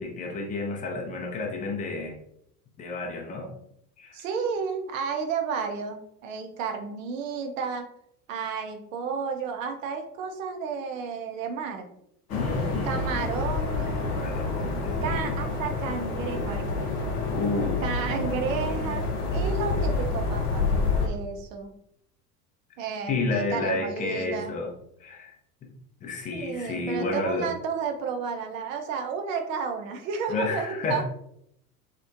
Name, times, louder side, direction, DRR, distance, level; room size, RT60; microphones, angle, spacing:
voice 1, 0.0-2.1 2.8-3.5 4.0-4.2 12.3-13.0 13.9-15.3 17.3-17.8 23.1-24.7 25.0-25.4 26.0-27.5 30.3-31.0, left 3 dB, 20° left, 1 dB, 0.4 m, -30 dB
voice 2, 4.1-7.9 8.3-11.8 12.8-14.1 15.0-16.9 17.8-19.1 19.3-21.7 22.8-24.6 26.3-31.0, right 5 dB, 60° right, 4 dB, 0.6 m, -32 dB
sound 1, 12.3-21.1, left 3 dB, 75° left, 0.6 m, -28 dB
2.8 x 2.0 x 2.4 m, 0.74 s
figure-of-eight pair, 70°, 46 cm